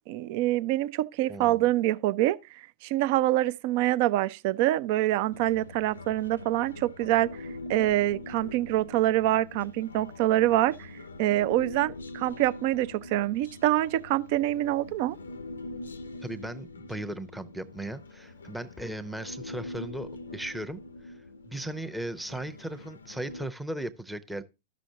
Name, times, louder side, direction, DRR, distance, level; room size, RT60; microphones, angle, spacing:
voice 1, 0.1-2.4 2.8-10.9 11.2-15.2, right 15 dB, 50° right, 0.4 m, -25 dB
voice 2, 1.3-1.7 16.2-21.1 21.5-24.4, right 1 dB, 5° right, 0.7 m, -37 dB
Human voice, 5.3-23.5, left 2 dB, 80° left, 0.5 m, -43 dB
13.0 x 6.2 x 2.7 m
figure-of-eight pair, 95°, 0 cm